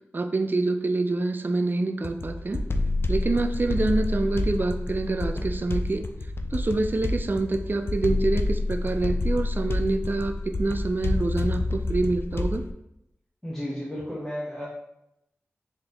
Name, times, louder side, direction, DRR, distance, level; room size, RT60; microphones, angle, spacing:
voice 1, 0.1-2.6 3.1-6.0 6.5-12.7, right 2 dB, 45° right, 8 dB, 0.4 m, -26 dB
sound 1, 2.0-12.7, left 2 dB, 55° left, 0.3 m, -28 dB
voice 2, 13.4-14.7, equal, 10° left, -8 dB, 1.0 m, -33 dB
3.6 x 3.5 x 3.0 m, 0.83 s
cardioid pair, 45°, 5 cm